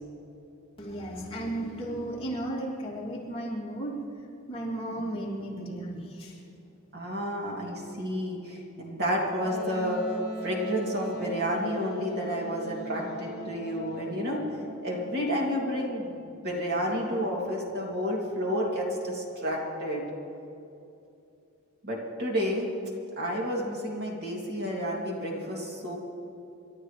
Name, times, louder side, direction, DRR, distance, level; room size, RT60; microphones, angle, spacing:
voice 1, 0.8-4.0 4.5-6.4, right 1 dB, 25° left, -5 dB, 2.7 m, -34 dB
voice 2, 6.9-10.0 10.4-14.5 14.8-20.0 21.8-22.7 23.2-26.0, equal, 50° right, -2 dB, 2.6 m, -30 dB
Wind instrument woodwind instrument, 9.4-15.0, equal, 40° left, 3.8 m, -39 dB
28.5 x 12.5 x 3.3 m, 2.8 s
head